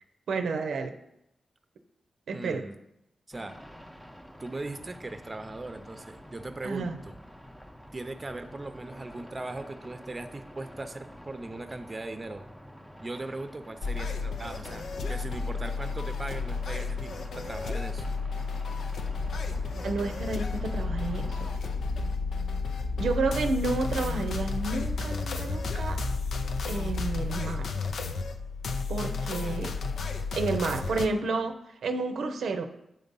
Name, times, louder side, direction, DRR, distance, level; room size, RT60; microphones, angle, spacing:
voice 1, 0.3-0.9 2.3-2.6 6.6-7.0 19.8-21.5 23.0-26.0 26.7-27.7 28.9-29.8 30.3-32.7, right 3 dB, 90° right, 7 dB, 0.6 m, -30 dB
voice 2, 2.3-2.8 3.3-3.6 4.4-7.2 7.9-12.5 13.0-18.0 29.4-29.6 30.8-31.0, right 2 dB, 30° right, 8 dB, 0.6 m, -39 dB
sound 1, 3.3-21.6, equal, 5° left, 0.7 m, -48 dB
sound 2, 13.8-31.1, left 4 dB, 80° left, 0.5 m, -33 dB
sound 3, 19.2-27.2, left 2 dB, 60° left, 1.1 m, -37 dB
7.7 x 3.9 x 5.4 m, 0.82 s
cardioid pair, 70°, 0 cm